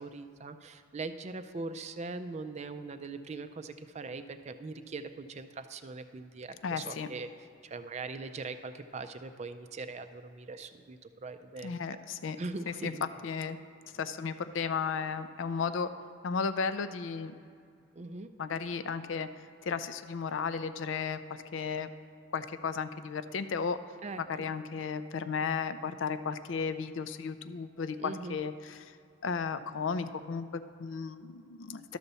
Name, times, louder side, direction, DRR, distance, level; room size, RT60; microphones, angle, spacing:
voice 1, 0.0-7.3 7.6-11.7 12.4-13.1 17.9-18.3 24.0-24.2 28.0-28.4, right 3 dB, 35° right, 10 dB, 0.4 m, -41 dB
voice 2, 6.6-7.1 11.6-12.4 12.7-13.6 13.9-15.9 16.2-17.3 18.4-21.9 22.3-23.8 24.3-29.0 29.2-32.0, left 5 dB, 70° left, 12 dB, 0.4 m, -34 dB
12.0 x 4.1 x 6.8 m, 2.4 s
head